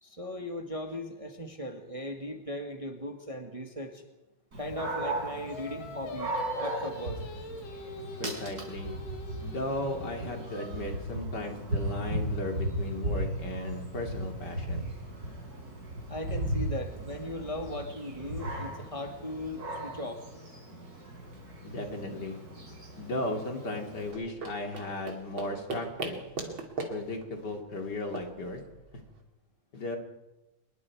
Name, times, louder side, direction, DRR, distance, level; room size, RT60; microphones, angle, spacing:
voice 1, 0.0-4.0 4.6-7.2 16.1-20.2, left 1 dB, 20° right, 4 dB, 1.7 m, -38 dB
Dog, 4.5-24.1, right 1 dB, 50° right, 5.4 m, -37 dB
Singing, 5.5-10.8, left 2 dB, 70° left, 2.5 m, -43 dB
voice 2, 8.2-8.9 9.4-14.9 21.6-22.4 23.0-26.6 26.9-28.6 29.7-30.0, left 2 dB, 55° left, 3 dB, 3.3 m, -36 dB
sound 1, 24.1-29.2, right 3 dB, 80° right, 3.4 m, -40 dB
25.5 x 22.0 x 4.8 m, 1.0 s
omnidirectional pair, 2.2 m